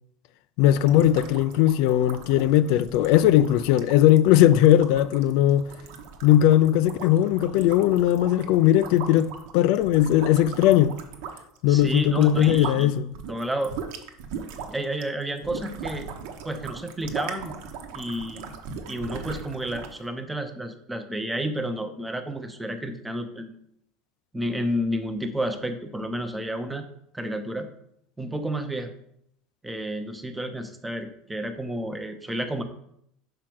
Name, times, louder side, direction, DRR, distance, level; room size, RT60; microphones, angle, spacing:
voice 1, 0.6-5.7 6.2-11.0 11.6-13.1, left 12 dB, 65° left, 0.3 m, -19 dB
sound 1, 0.6-12.8 13.1-20.0, right 6 dB, 70° right, 1.0 m, -39 dB
voice 2, 11.7-12.9 13.3-13.7 14.7-16.1 16.4-17.5 17.9-18.5 18.9-23.6 24.3-26.9 27.1-27.7 28.2-28.9 29.6-32.6, right 1 dB, 5° right, 0.7 m, -30 dB
5.9 x 4.7 x 6.0 m
cardioid pair, 150°, 0 cm